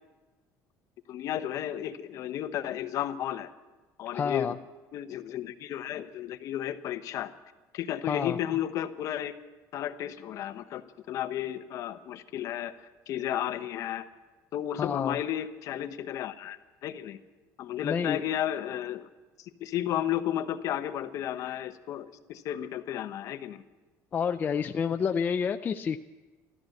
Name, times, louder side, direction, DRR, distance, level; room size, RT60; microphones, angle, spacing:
voice 1, 1.1-3.5 4.0-4.5 4.9-7.3 7.7-9.3 9.7-12.7 13.1-14.0 14.5-17.2 17.6-19.1 19.4-23.6, left 11 dB, 55° left, 9 dB, 0.9 m, -33 dB
voice 2, 4.1-4.6 8.1-8.4 14.7-15.2 17.8-18.2 24.1-26.0, left 7 dB, 25° left, 7 dB, 0.4 m, -29 dB
13.5 x 13.0 x 7.9 m, 1.2 s
cardioid pair, 155°, 7 cm